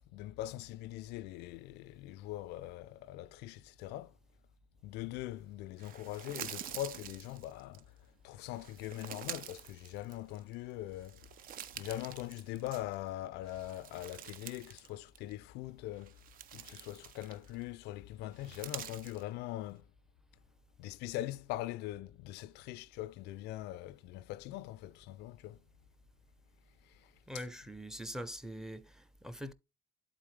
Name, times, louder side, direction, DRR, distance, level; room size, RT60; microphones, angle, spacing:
voice 1, 0.0-4.1 4.8-8.0 8.2-11.3 11.8-16.2 16.5-19.9 20.8-25.6 26.8-27.5, left 14 dB, 90° left, 0.4 m, -42 dB
sound 1, 5.8-7.8 8.5-10.5 10.9-13.1 13.4-14.9 15.2-15.3 15.9-17.6 18.3-19.2, right 10 dB, 60° right, 0.5 m, -47 dB
voice 2, 27.3-29.5, equal, 5° right, 0.6 m, -43 dB
11.5 x 3.9 x 3.2 m
cardioid pair, 110°, 17 cm